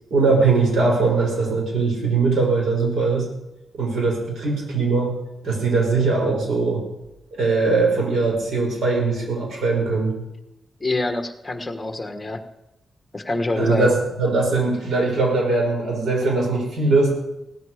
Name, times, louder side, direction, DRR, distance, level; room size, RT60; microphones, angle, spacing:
voice 1, 0.1-3.3 3.7-5.1 5.4-6.8 7.3-10.1 13.6-17.1, right 3 dB, 90° right, 0 dB, 6.2 m, -20 dB
voice 2, 10.8-12.4 13.1-13.9, left 2 dB, 15° left, 6 dB, 1.4 m, -25 dB
17.5 x 14.5 x 5.1 m, 0.89 s
wide cardioid pair, 155°, 0 cm